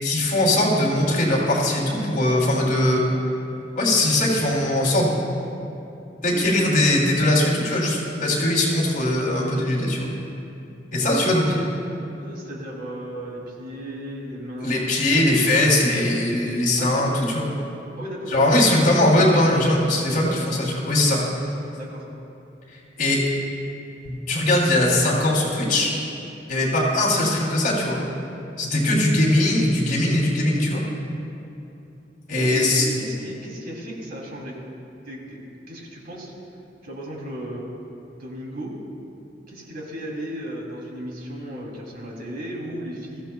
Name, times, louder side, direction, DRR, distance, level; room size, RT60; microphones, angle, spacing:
voice 1, 0.0-3.0 3.7-5.3 6.2-10.1 10.9-11.7 14.6-17.5 18.3-21.2 23.0-23.2 24.0-25.9 26.5-28.0 28.6-30.8 32.3-32.8, left 1 dB, 50° left, -4 dB, 3.1 m, -20 dB
voice 2, 6.3-6.8 11.0-11.7 12.2-14.9 16.8-17.2 18.0-19.4 19.9-20.5 21.7-22.0 28.9-29.1 32.3-34.6 35.0-36.3 36.8-37.6 38.2-38.8 39.5-43.2, equal, 55° right, -3 dB, 3.0 m, -35 dB
22.0 x 15.0 x 2.3 m, 2.8 s
head